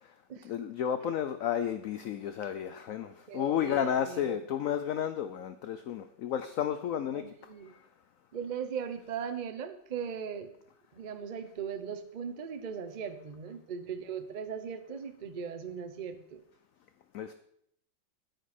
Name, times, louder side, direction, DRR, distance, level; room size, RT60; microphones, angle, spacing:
voice 1, 0.4-7.2 17.1-17.3, left 9 dB, 90° left, 10 dB, 0.7 m, -32 dB
voice 2, 3.0-4.4 7.1-7.7 8.3-10.5 10.9-16.4, right 7 dB, 65° right, 8 dB, 0.4 m, -39 dB
9.2 x 9.2 x 4.3 m, 0.72 s
omnidirectional pair, 2.0 m